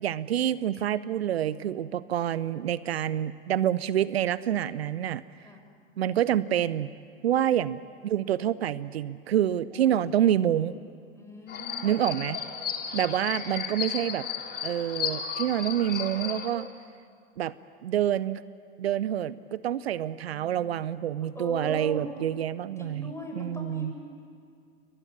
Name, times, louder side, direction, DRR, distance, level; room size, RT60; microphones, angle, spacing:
voice 1, 0.0-5.2 6.0-6.9 7.2-10.7 11.8-12.4 12.9-14.2 14.6-16.7 17.4-17.5 17.8-18.4 18.8-23.9, right 11 dB, 75° right, 18 dB, 0.7 m, -27 dB
voice 2, 1.8-2.1 5.4-5.6 9.7-10.0 11.1-12.2 13.2-13.7 20.3-20.8 21.3-22.1 22.8-24.0, left 2 dB, 10° left, 1 dB, 7.5 m, -41 dB
sound 1, 11.5-16.5, left 7 dB, 30° left, 3.3 m, -34 dB
29.0 x 23.5 x 8.7 m, 2.2 s
figure-of-eight pair, 80°, 31 cm